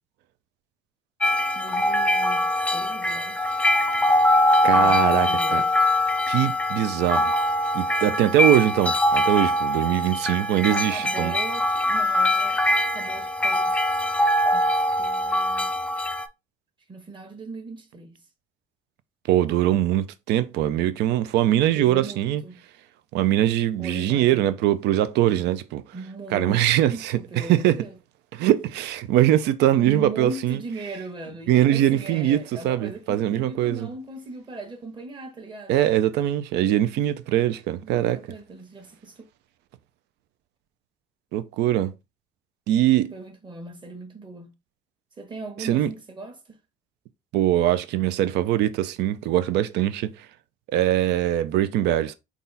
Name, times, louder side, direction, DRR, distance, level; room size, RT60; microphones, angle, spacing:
sound 1, 1.2-16.3, left 1 dB, 5° left, 0.4 m, -22 dB
voice 1, 1.5-3.5 4.7-5.9 10.7-12.6 12.9-13.8 14.5-15.7 16.9-18.2 21.7-22.6 23.8-24.5 25.9-26.6 26.9-28.0 29.8-35.8 37.8-39.3 43.1-44.6 45.2-46.6, right 3 dB, 30° right, 1.2 m, -38 dB
voice 2, 4.6-5.6 6.3-7.3 7.7-11.3 19.3-22.4 23.1-25.8 26.3-27.8 28.3-30.6 31.5-33.9 35.7-38.2 41.3-41.9 42.7-43.1 45.6-45.9 47.3-50.3 50.7-52.1, right 12 dB, 85° right, 0.5 m, -22 dB
4.0 x 2.4 x 4.0 m
cardioid pair, 110°, 17 cm